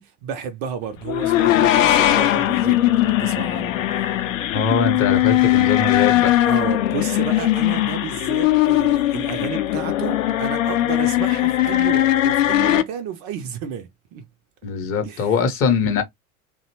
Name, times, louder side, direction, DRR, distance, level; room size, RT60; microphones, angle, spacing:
voice 1, 0.0-4.1 6.4-14.3 15.0-15.4, right 7 dB, 35° right, 0.5 m, -32 dB
sound 1, 1.0-12.8, left 14 dB, 65° left, 0.5 m, -19 dB
voice 2, 4.5-6.3 14.6-16.0, left 5 dB, 30° left, 0.8 m, -21 dB
2.7 x 2.1 x 2.8 m
figure-of-eight pair, 75°, 42 cm